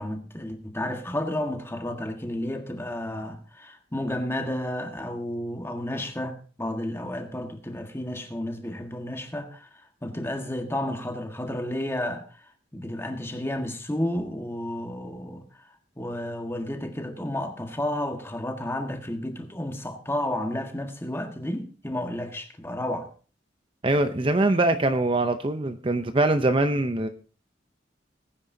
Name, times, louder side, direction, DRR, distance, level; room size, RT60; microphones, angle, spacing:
voice 1, 0.0-9.7 10.0-12.2 12.7-15.4 16.0-23.1, left 1 dB, 15° left, 1.6 m, -31 dB
voice 2, 23.8-27.1, right 2 dB, 30° right, 0.7 m, -23 dB
20.0 x 9.7 x 2.7 m
head